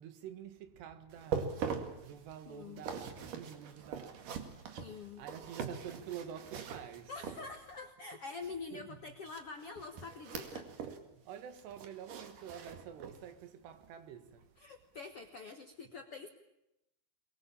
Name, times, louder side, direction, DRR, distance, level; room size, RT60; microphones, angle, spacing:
voice 1, 0.0-7.1 8.4-9.2 11.1-14.5, right 9 dB, 85° right, 3.9 m, -48 dB
sound 1, 1.1-7.8 9.2-11.1 11.3-13.3 13.7-13.9 14.4-14.5, right 6 dB, 55° right, 3.5 m, -42 dB
voice 2, 2.5-2.8 4.8-5.2 7.1-10.7 14.6-16.3, left 4 dB, 65° left, 1.4 m, -46 dB
23.0 x 22.5 x 8.6 m
omnidirectional pair, 4.7 m